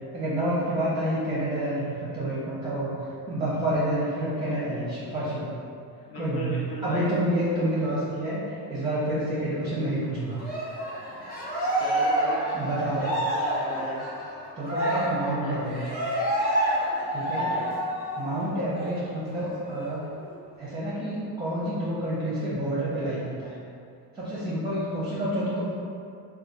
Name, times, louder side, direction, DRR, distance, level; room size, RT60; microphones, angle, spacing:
voice 1, 0.1-3.0 3.3-5.5 6.1-10.4 12.5-13.2 14.6-15.9 17.1-17.5 18.2-20.0 20.6-23.5 24.1-25.7, right 1 dB, 10° right, -9 dB, 0.6 m, -28 dB
voice 2, 6.0-7.1 11.8-14.0 15.4-15.6 17.3-17.7, equal, 55° left, -5 dB, 0.8 m, -36 dB
Cheering, 10.4-18.4 18.7-18.9 19.3-20.3, right 1 dB, 20° left, 0.9 m, -28 dB
3.3 x 2.3 x 2.8 m, 2.4 s
cardioid pair, 135°, 43 cm